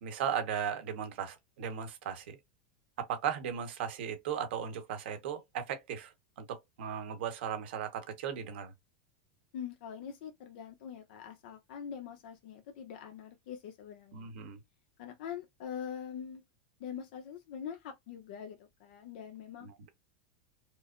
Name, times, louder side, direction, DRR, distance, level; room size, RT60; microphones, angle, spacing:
voice 1, 0.0-2.4 3.0-6.1 6.4-8.7 14.1-14.6 19.6-19.9, right 8 dB, 70° right, 1.1 m, -37 dB
voice 2, 9.5-14.3 15.0-16.4 16.8-19.7, left 8 dB, 60° left, 0.7 m, -43 dB
4.8 x 2.0 x 2.5 m
supercardioid pair, 170°, 6 cm